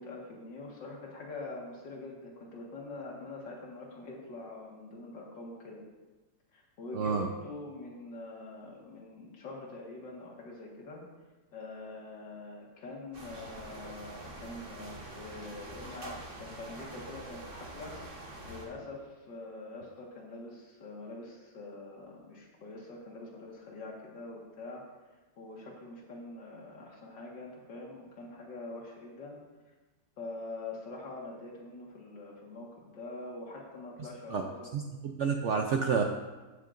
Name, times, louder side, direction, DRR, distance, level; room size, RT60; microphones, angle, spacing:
voice 1, 0.0-5.8 6.5-11.0 11.5-17.9 18.5-24.8 25.4-29.4 30.2-34.7, left 2 dB, 80° left, -3 dB, 2.4 m, -44 dB
voice 2, 6.9-7.3 34.3-34.4 34.7-34.8 35.2-36.0, right 6 dB, 85° right, 3 dB, 0.6 m, -28 dB
sound 1, 13.1-18.7, right 1 dB, 35° right, 1.4 m, -45 dB
15.5 x 6.5 x 2.6 m, 1.2 s
omnidirectional pair, 1.9 m